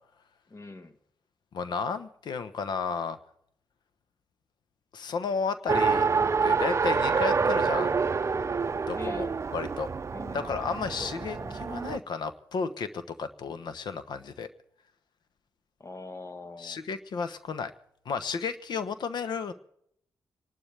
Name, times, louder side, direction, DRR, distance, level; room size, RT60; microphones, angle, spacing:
voice 1, 0.5-1.0 8.9-9.4 10.1-10.6 11.0-11.6 15.8-16.8, left 2 dB, 40° left, 9 dB, 1.5 m, -44 dB
voice 2, 1.5-3.2 4.9-6.1 6.4-7.9 8.9-9.9 10.3-14.5 16.6-17.7 18.0-19.5, left 5 dB, 75° left, 12 dB, 1.0 m, -33 dB
Race car auto racing, 5.7-12.0, right 5 dB, 40° right, 0.5 m, -27 dB
26.5 x 12.0 x 3.4 m, 0.72 s
cardioid pair, 55°, 8 cm